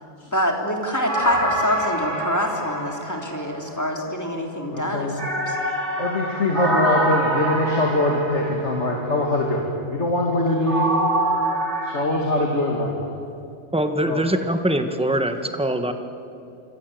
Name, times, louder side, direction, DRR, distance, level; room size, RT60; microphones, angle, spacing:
voice 1, 0.3-5.1 5.5-5.6, left 1 dB, 15° left, 1 dB, 3.5 m, -25 dB
sound 1, 1.1-3.9 5.2-9.0 10.7-12.0, right 1 dB, 70° right, 4.2 m, -25 dB
voice 2, 4.7-5.2 6.0-10.9 11.8-13.1 14.0-14.2, left 1 dB, 75° left, 0 dB, 3.0 m, -23 dB
voice 3, 13.7-15.9, right 1 dB, 5° right, 7 dB, 1.5 m, -23 dB
26.5 x 26.0 x 8.0 m, 2.6 s
omnidirectional pair, 1.2 m